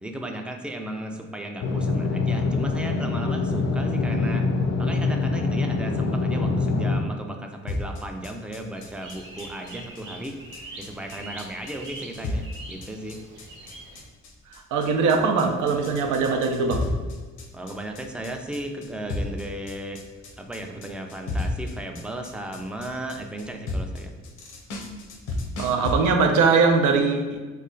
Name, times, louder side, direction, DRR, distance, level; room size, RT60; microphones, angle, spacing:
voice 1, 0.0-4.5 4.8-13.2 17.5-20.0 20.4-24.1, right 1 dB, 5° right, 3 dB, 0.3 m, -35 dB
sound 1, 1.6-7.0, left 3 dB, 60° left, 0.5 m, -24 dB
sound 2, 7.7-25.9, left 2 dB, 80° left, 0.8 m, -33 dB
sound 3, 8.8-14.0, right 2 dB, 40° right, 0.8 m, -43 dB
voice 2, 14.5-16.9 25.6-27.5, right 4 dB, 80° right, 4 dB, 0.5 m, -21 dB
3.1 x 2.2 x 3.8 m, 1.3 s
cardioid pair, 90°, 30 cm